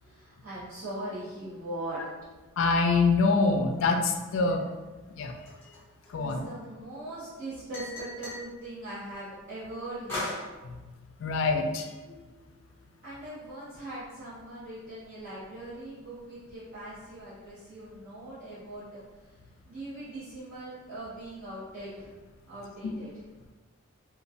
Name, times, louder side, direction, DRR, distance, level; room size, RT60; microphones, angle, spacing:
voice 1, 0.0-2.0 6.2-10.4 13.0-19.4 19.6-22.1 22.4-23.1, right 1 dB, 40° right, -16 dB, 1.1 m, -40 dB
voice 2, 2.6-4.7 5.1-5.3 6.1-6.4 11.2-11.9, left 3 dB, 60° left, 3 dB, 0.3 m, -25 dB
sound 1, 5.5-6.6 7.7-8.5 10.1-10.5, left 1 dB, 10° left, 0.8 m, -36 dB
3.0 x 2.2 x 2.6 m, 1.2 s
head